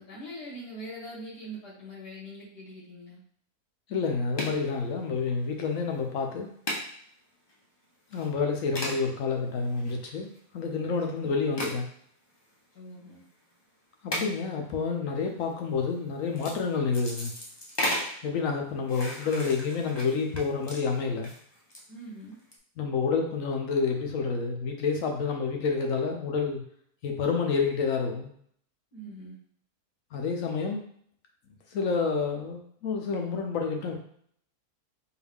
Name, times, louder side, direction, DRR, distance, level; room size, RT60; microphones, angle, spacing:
voice 1, 0.0-3.2 11.2-11.3 12.7-13.2 21.9-22.4 28.9-29.4, right 1 dB, 90° left, -7 dB, 2.3 m, -42 dB
voice 2, 3.9-6.5 8.1-11.9 14.0-17.3 18.2-21.3 22.8-26.6 27.0-28.3 30.1-30.8 31.7-34.0, left 5 dB, 65° left, 2 dB, 1.0 m, -29 dB
sound 1, 4.4-4.6 5.4-5.7 6.0-6.1 6.7-6.8 7.5-7.6 8.1-8.3 8.7-9.0 9.6-10.4 11.6-11.8 12.7-12.8 14.1-14.3 15.1-15.4 16.2-16.6 16.9-18.2 18.9-21.8 22.3-22.5, equal, 30° left, 0.4 m, -35 dB
4.6 x 2.6 x 3.4 m, 0.63 s
omnidirectional pair, 1.7 m